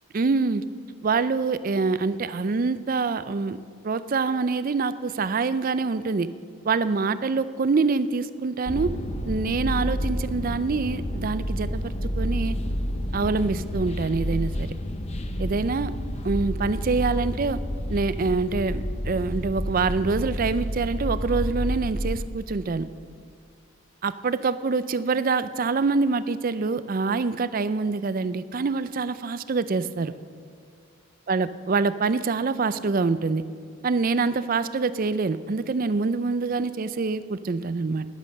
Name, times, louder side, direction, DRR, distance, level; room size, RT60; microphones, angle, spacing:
voice 1, 0.1-0.6 1.0-3.6 3.8-6.3 6.6-9.0 9.3-12.6 13.1-14.7 15.4-15.9 16.2-17.6 17.9-22.9 24.0-30.1 31.3-33.5 33.8-38.1, right 4 dB, 40° right, 14 dB, 0.4 m, -25 dB
sound 1, 8.7-22.2, equal, 30° left, 0.7 m, -29 dB
11.5 x 10.5 x 6.6 m, 2.2 s
head